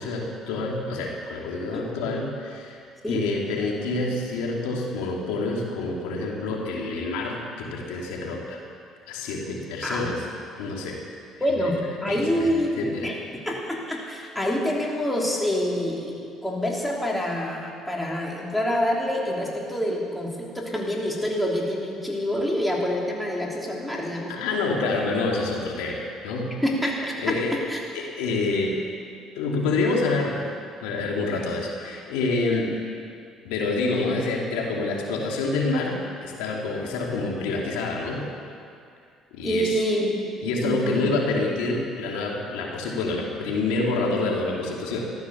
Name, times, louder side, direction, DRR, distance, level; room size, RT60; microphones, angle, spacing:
voice 1, 0.0-2.8 3.1-8.6 9.1-10.2 10.6-11.0 11.6-11.7 12.1-13.1 24.3-26.6 27.2-27.6 27.9-28.8 29.3-30.4 30.8-32.7 33.4-38.3 39.3-39.8 40.4-45.0, left 3 dB, 90° left, -1 dB, 2.5 m, -27 dB
voice 2, 11.4-13.1 13.4-16.2 16.4-24.3 26.6-27.4 27.7-27.8 39.4-41.1, equal, 5° left, -3 dB, 3.3 m, -26 dB
14.5 x 12.5 x 7.0 m, 2.4 s
supercardioid pair, 85°, 0 cm